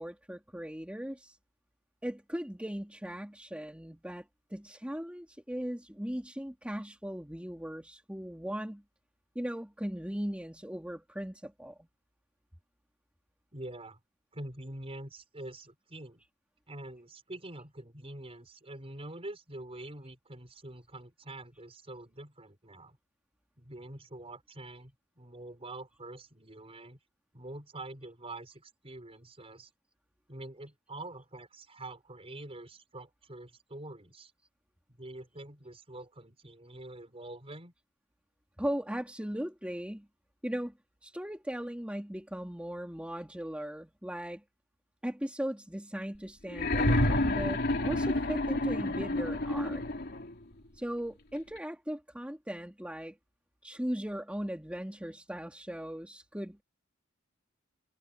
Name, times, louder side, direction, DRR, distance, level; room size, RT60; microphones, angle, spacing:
voice 1, 0.0-1.4 2.0-8.8 9.3-11.9 38.6-40.1 40.4-40.7 41.0-44.4 45.0-49.8 50.7-53.2 53.6-56.6, equal, 5° right, 2.6 m, -38 dB
voice 2, 13.5-14.0 14.3-16.2 16.7-23.0 23.6-27.0 27.3-29.7 30.3-34.3 34.9-37.7, right 1 dB, 30° right, 5.9 m, -45 dB
sound 1, 46.5-50.3 51.6-51.7, left 1 dB, 50° left, 3.1 m, -29 dB
head